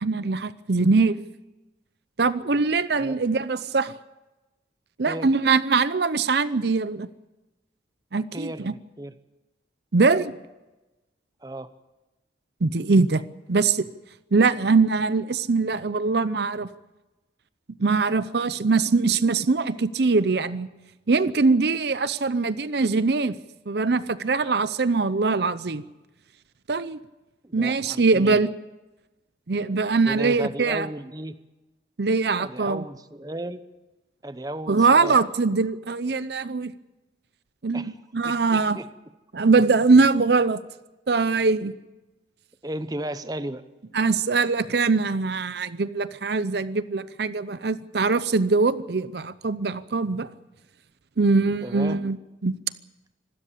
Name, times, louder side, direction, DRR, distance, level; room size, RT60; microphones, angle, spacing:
voice 1, 0.0-1.2 2.2-3.9 5.0-7.1 8.1-8.7 9.9-10.3 12.6-13.2 13.5-13.9 14.3-16.7 17.8-20.7 21.1-23.4 23.7-25.8 26.7-27.0 27.5-28.5 29.5-30.9 32.0-32.8 34.7-36.7 37.6-38.8 39.3-40.6 41.1-41.7 43.9-50.3 51.2-52.2 52.4-52.6, right 4 dB, 60° right, 15 dB, 0.6 m, -22 dB
voice 2, 8.3-9.1 11.4-11.7 27.4-28.4 30.0-31.4 32.4-33.6 34.2-35.2 37.7-38.0 38.2-38.9 42.6-43.6 51.6-52.0, right 1 dB, 20° right, 11 dB, 0.8 m, -34 dB
25.0 x 13.0 x 8.5 m, 1.1 s
head